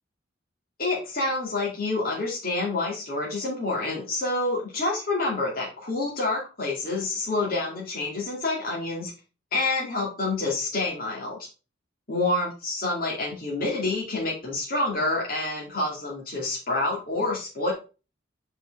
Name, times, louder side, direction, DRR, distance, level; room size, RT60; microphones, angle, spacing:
voice 1, 0.8-9.1 9.5-11.4 12.1-17.7, left 2 dB, 45° left, -4 dB, 2.3 m, -28 dB
5.4 x 5.1 x 4.7 m, 0.32 s
head